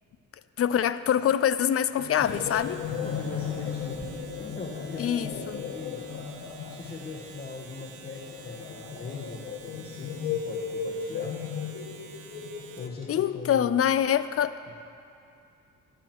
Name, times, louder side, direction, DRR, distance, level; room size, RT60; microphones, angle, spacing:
voice 1, 0.6-2.8 5.0-5.6 13.1-14.7, left 9 dB, 50° left, 14 dB, 0.6 m, -25 dB
sound 1, 2.0-13.3, left 6 dB, 80° left, 1.3 m, -36 dB
Domestic sounds home sounds, 2.0-13.0, right 6 dB, 90° right, 1.3 m, -50 dB
Thunder / Rain, 2.2-11.8, right 2 dB, 20° right, 1.6 m, -50 dB
voice 2, 2.9-4.1 4.4-6.1 6.7-11.4 12.8-13.8 14.7-14.8, left 4 dB, 35° left, 0 dB, 1.4 m, -40 dB
26.0 x 12.5 x 3.0 m, 2.6 s
cardioid pair, 90°, 30 cm